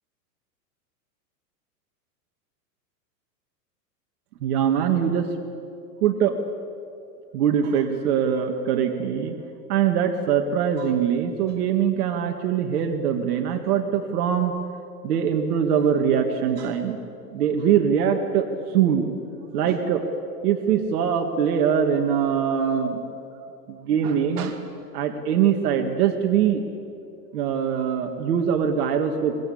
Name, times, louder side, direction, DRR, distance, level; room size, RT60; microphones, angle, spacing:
voice 1, 4.4-5.3 6.0-6.4 7.3-9.4 9.7-14.5 15.0-17.0 17.3-19.1 19.5-20.0 20.4-23.0 23.7-24.6 24.9-26.6 27.3-29.4, right 8 dB, 65° right, 5 dB, 2.1 m, -22 dB
23.5 x 21.0 x 8.7 m, 2.6 s
hypercardioid pair, 135°, 49 cm